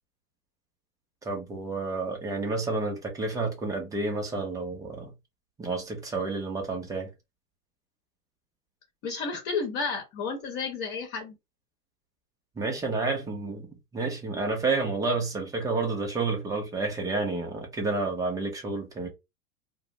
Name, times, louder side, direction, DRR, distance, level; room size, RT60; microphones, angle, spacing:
voice 1, 1.2-5.1 5.6-7.1 12.6-13.7 13.9-19.1, right 3 dB, 10° right, 0.4 m, -30 dB
voice 2, 9.0-11.4, left 4 dB, 40° left, 0.9 m, -32 dB
2.5 x 2.0 x 3.0 m
hypercardioid pair, 100°, 48 cm